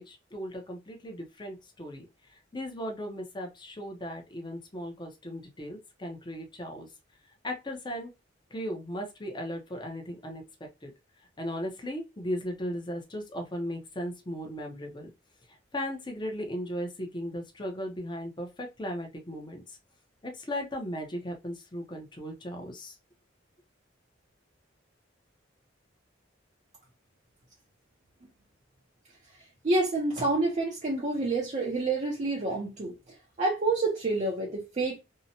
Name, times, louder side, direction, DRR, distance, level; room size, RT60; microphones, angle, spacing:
voice 1, 0.0-6.9 7.4-8.1 8.5-10.9 11.4-15.1 15.5-19.8 20.2-23.0, equal, 25° left, 0.6 m, -37 dB
voice 2, 29.6-35.0, right 2 dB, 35° right, 0.6 m, -28 dB
2.7 x 2.1 x 2.7 m
head